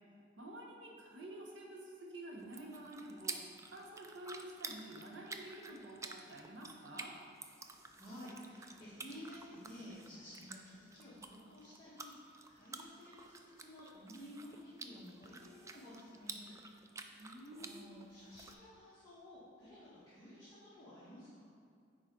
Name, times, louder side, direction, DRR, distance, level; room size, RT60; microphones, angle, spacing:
voice 1, 0.4-7.2 17.2-17.9, right 1 dB, 70° right, -1 dB, 1.1 m, -50 dB
sound 1, 2.4-18.5, right 4 dB, 15° right, 0.3 m, -51 dB
voice 2, 7.6-16.5 17.0-21.5, equal, 20° left, -13 dB, 1.5 m, -53 dB
9.0 x 4.4 x 3.8 m, 2.3 s
head